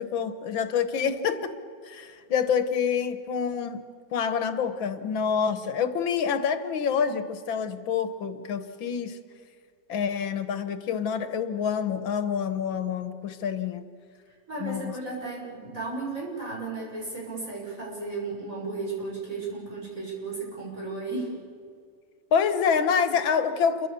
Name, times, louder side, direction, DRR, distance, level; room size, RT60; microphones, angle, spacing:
voice 1, 0.0-1.5 1.8-3.8 4.1-9.2 9.9-13.8 14.6-14.9 22.3-23.9, left 7 dB, 90° left, 11 dB, 2.0 m, -27 dB
voice 2, 14.5-21.4, right 3 dB, 40° right, -3 dB, 6.9 m, -34 dB
28.5 x 23.5 x 6.9 m, 2.2 s
omnidirectional pair, 2.1 m